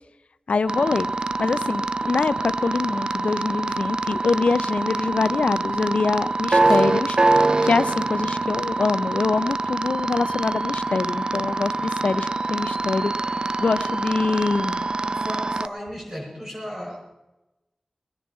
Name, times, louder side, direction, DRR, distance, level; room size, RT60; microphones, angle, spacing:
voice 1, 0.5-1.1 1.4-14.9, left 4 dB, 85° left, 15 dB, 0.4 m, -24 dB
sound 1, 0.7-15.7, right 2 dB, 45° right, 0.4 m, -25 dB
voice 2, 6.6-7.0 15.2-17.0, equal, 25° right, -3 dB, 6.2 m, -35 dB
20.0 x 10.5 x 4.2 m, 0.98 s
wide cardioid pair, 65°, 2 cm